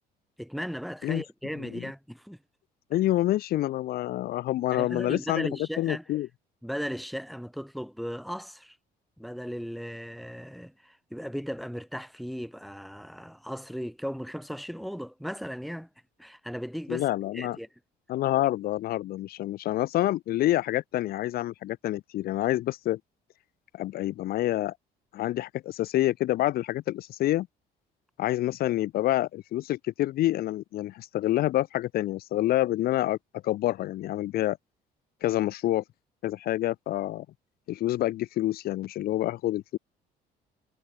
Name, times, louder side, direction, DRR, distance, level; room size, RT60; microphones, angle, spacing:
voice 1, 0.4-2.4 4.7-6.0 6.6-8.8 9.2-15.9 16.2-17.7, equal, ahead, 2.5 m, -36 dB
voice 2, 2.9-6.3 16.9-17.6 18.1-23.0 23.7-24.7 25.1-27.5 28.2-33.2 33.4-34.6 35.2-35.8 36.2-37.3 37.7-39.8, left 15 dB, 65° left, 0.6 m, -27 dB
cardioid pair, 110°, 17 cm